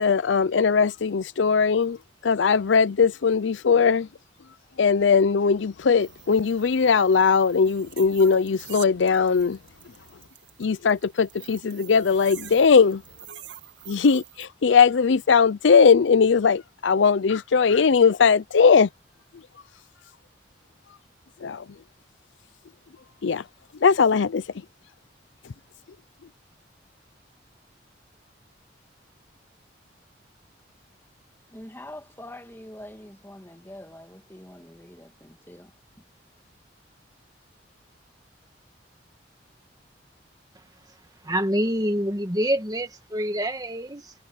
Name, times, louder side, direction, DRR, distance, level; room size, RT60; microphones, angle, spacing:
voice 1, 0.0-2.0 2.2-4.1 4.8-9.6 10.6-13.0 13.9-18.9 21.4-21.6 23.2-23.4 23.8-24.4, left 5 dB, 80° left, 0.5 m, -19 dB
sound 1, 6.0-14.5, right 12 dB, 70° right, 2.1 m, -46 dB
voice 2, 31.5-35.7, left 1 dB, 10° left, 2.3 m, -44 dB
voice 3, 41.2-44.1, equal, 20° right, 2.0 m, -26 dB
head